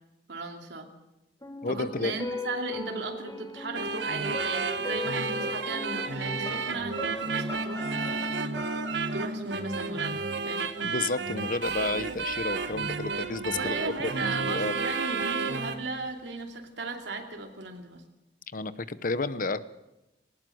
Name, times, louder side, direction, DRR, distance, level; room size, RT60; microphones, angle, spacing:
voice 1, 0.3-0.9 1.7-8.5 9.1-10.7 13.5-18.0, right 3 dB, 75° right, 3 dB, 2.8 m, -36 dB
sound 1, 1.4-10.4 10.7-10.8, left 2 dB, 20° left, 3.0 m, -39 dB
voice 2, 1.6-2.1 10.8-14.7 18.5-19.6, left 3 dB, 50° left, 15 dB, 0.9 m, -31 dB
sound 2, 3.7-15.8, right 4 dB, 90° right, 1.4 m, -31 dB
sound 3, 11.6-16.4, right 1 dB, 50° right, 6.1 m, -54 dB
19.5 x 18.5 x 7.9 m, 0.96 s
head